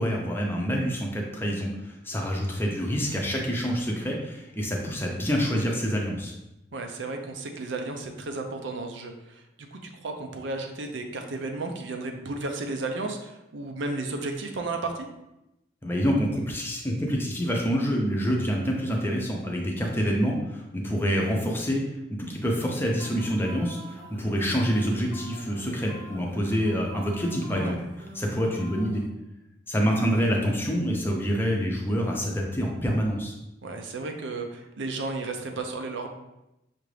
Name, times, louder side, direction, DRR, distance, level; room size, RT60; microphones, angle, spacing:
voice 1, 0.0-6.3 15.8-21.8 22.1-27.8 28.1-29.0 29.7-33.3, equal, 10° left, -1 dB, 0.6 m, -27 dB
voice 2, 6.7-15.1 27.5-27.8 33.6-36.1, right 3 dB, 80° right, 4 dB, 0.6 m, -33 dB
sound 1, 23.0-29.1, equal, 55° right, 0.8 m, -45 dB
5.8 x 2.5 x 3.2 m, 0.91 s
head